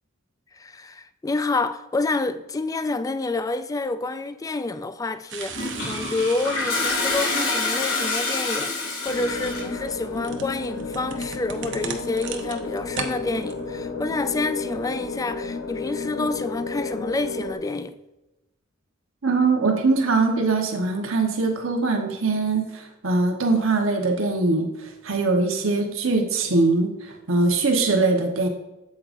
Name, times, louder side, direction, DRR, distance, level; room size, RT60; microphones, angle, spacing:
voice 1, 0.5-18.0, left 3 dB, 15° left, 0.3 m, -28 dB
sound 1, 5.3-8.2 9.2-13.1 13.4-13.5, right 6 dB, 65° right, 0.8 m, -37 dB
Toilet flush, 5.5-9.8, left 3 dB, 85° left, 2.7 m, -27 dB
sound 2, 9.1-17.5, left 3 dB, 70° left, 1.1 m, -32 dB
voice 2, 19.2-24.7 25.0-28.5, right 3 dB, 80° right, 1.2 m, -22 dB
8.6 x 7.7 x 2.6 m
head